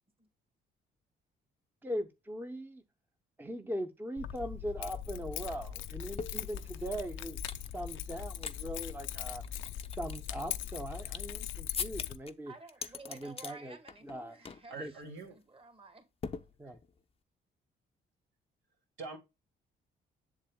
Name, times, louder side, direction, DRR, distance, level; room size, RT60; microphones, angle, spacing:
voice 1, 1.8-2.8 3.4-7.4 7.7-9.4 10.0-12.5 13.1-13.8 14.0-14.4 14.8-14.9 16.6-16.8, equal, 10° right, 0.9 m, -40 dB
Keys jangling, 4.2-12.1, left 10 dB, 75° left, 0.6 m, -40 dB
sound 1, 4.3-4.4 4.7-7.7 8.1-8.6 8.8-8.9 9.4-11.4 11.7-12.3 12.7-13.5 13.9-14.2 14.4-14.7 15.0-15.2 16.2-17.0, left 5 dB, 30° left, 0.6 m, -42 dB
voice 2, 12.5-15.0 15.3-16.1, right 2 dB, 30° right, 1.8 m, -53 dB
voice 3, 14.7-15.3 19.0-19.2, right 3 dB, 75° right, 2.5 m, -43 dB
7.4 x 7.3 x 2.3 m
cardioid pair, 90°, 20 cm